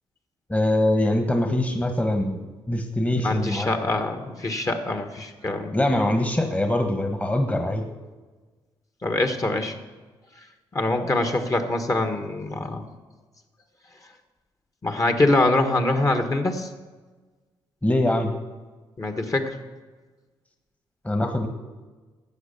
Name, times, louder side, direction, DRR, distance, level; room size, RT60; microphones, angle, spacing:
voice 1, 0.5-3.9 5.7-7.8 17.8-18.3 21.0-21.5, left 1 dB, 15° left, 5 dB, 1.3 m, -23 dB
voice 2, 3.1-5.7 9.0-9.7 10.7-12.8 14.8-16.7 19.0-19.6, left 2 dB, 35° left, 6 dB, 1.5 m, -24 dB
12.5 x 8.1 x 6.8 m, 1.3 s
cardioid pair, 70°, 10 cm